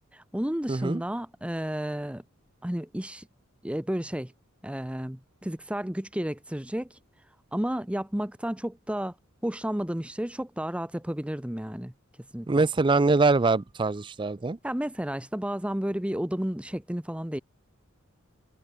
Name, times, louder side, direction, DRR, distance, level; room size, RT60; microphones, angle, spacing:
voice 1, 0.1-2.2 2.6-3.3 3.6-4.3 4.6-7.0 7.5-9.1 9.4-11.9 12.3-12.6 14.6-17.4, equal, 5° right, 0.9 m, -32 dB
voice 2, 0.7-1.0 12.5-14.6, right 3 dB, 25° right, 0.4 m, -23 dB
head